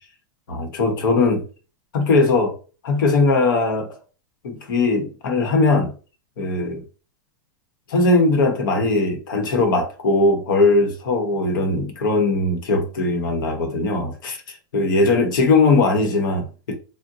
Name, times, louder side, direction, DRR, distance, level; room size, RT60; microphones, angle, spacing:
voice 1, 0.5-1.4 1.9-2.5 2.8-3.9 4.4-5.9 6.4-6.8 7.9-16.8, left 3 dB, 85° left, 1.0 m, -19 dB
2.6 x 2.1 x 3.7 m
supercardioid pair, 150°, 11 cm